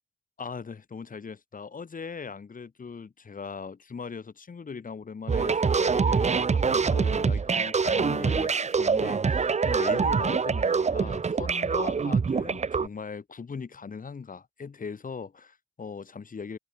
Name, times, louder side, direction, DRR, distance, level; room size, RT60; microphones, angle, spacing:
voice 1, 0.4-16.6, left 5 dB, 55° left, 5.8 m, -39 dB
sound 1, 5.3-12.9, right 5 dB, 45° right, 1.0 m, -25 dB
cardioid pair, 55°, 16 cm